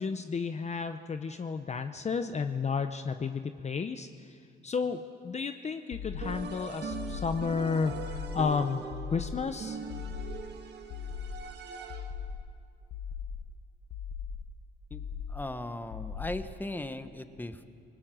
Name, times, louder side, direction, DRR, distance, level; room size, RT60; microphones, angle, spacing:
voice 1, 0.0-8.9 9.1-9.8, left 5 dB, 35° left, 8 dB, 0.8 m, -32 dB
sound 1, 5.9-6.5 6.9-7.5 7.9-8.5 8.9-9.5 9.9-10.5 10.9-11.5 11.9-12.5 12.9-13.5 13.9-14.5 14.9-15.5 15.9-16.6, left 7 dB, 80° left, 1.1 m, -39 dB
sound 2, 6.2-12.3, right 5 dB, 55° right, 1.9 m, -41 dB
voice 2, 15.3-17.7, left 1 dB, 10° left, 9 dB, 1.2 m, -38 dB
27.5 x 19.0 x 6.3 m, 2.4 s
cardioid pair, 90°, 20 cm